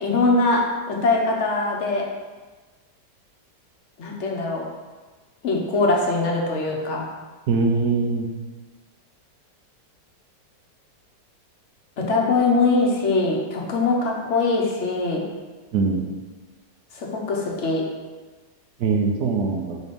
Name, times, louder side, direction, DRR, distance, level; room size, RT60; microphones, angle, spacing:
voice 1, 0.0-2.1 4.0-4.6 5.4-7.0 12.0-15.2 16.9-17.8, left 3 dB, 50° left, -1 dB, 1.0 m, -22 dB
voice 2, 7.5-8.3 15.7-16.1 18.8-19.8, right 4 dB, 70° right, 1 dB, 1.1 m, -22 dB
4.6 x 4.0 x 5.1 m, 1.3 s
omnidirectional pair, 1.9 m